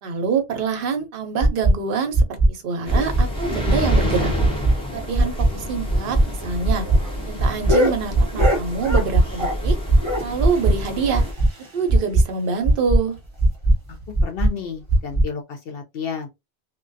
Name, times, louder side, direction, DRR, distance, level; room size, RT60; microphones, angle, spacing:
voice 1, 0.0-4.3 4.9-6.9 7.3-9.8 10.2-11.2 11.7-13.2, right 5 dB, 60° right, 0.7 m, -25 dB
sound 1, 1.4-1.7 2.1-2.5 2.9-3.2 3.6-4.0 4.4-4.7 5.1-5.5 5.9-6.2 6.6-7.0 7.4-7.7 8.1-8.5 8.9-9.2 9.6-10.0 10.4-10.7 11.1-11.5 11.9-12.2 12.6-13.0 13.4-13.7 14.1-14.5 14.9-15.2, right 2 dB, 35° left, 1.1 m, -16 dB
sound 2, 2.9-11.3, left 1 dB, 5° left, 0.5 m, -29 dB
sound 3, 6.3-9.7 10.0-12.0 12.3-12.4 12.7-12.8 13.2-13.3 13.8-14.1 15.0-15.1, left 1 dB, 30° right, 0.8 m, -27 dB
voice 2, 14.2-16.3, left 7 dB, 65° left, 0.7 m, -31 dB
2.3 x 2.2 x 2.5 m
omnidirectional pair, 1.2 m